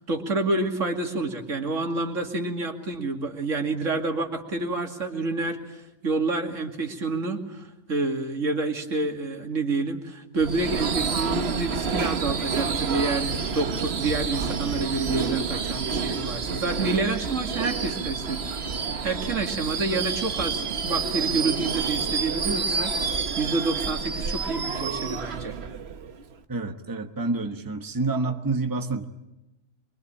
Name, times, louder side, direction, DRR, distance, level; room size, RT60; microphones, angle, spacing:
voice 1, 0.0-18.4 18.7-25.5, right 3 dB, 70° right, 4 dB, 2.7 m, -28 dB
Subway metro underground / Screech, 10.4-26.3, right 5 dB, 55° right, 1.3 m, -29 dB
voice 2, 26.5-29.0, right 3 dB, 15° right, 5 dB, 1.3 m, -28 dB
24.5 x 24.0 x 8.8 m, 0.97 s
omnidirectional pair, 1.3 m